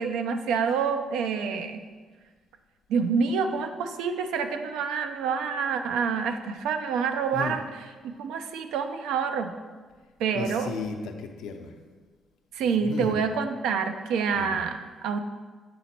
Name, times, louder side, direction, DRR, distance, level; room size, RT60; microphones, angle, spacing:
voice 1, 0.0-1.8 2.9-7.6 8.0-9.5 10.2-10.7 12.5-15.2, right 6 dB, 90° right, 8 dB, 0.5 m, -27 dB
voice 2, 10.3-11.7 12.8-13.2 14.3-14.7, left 4 dB, 90° left, 4 dB, 0.6 m, -35 dB
7.8 x 4.1 x 4.4 m, 1.4 s
cardioid pair, 90°, 0 cm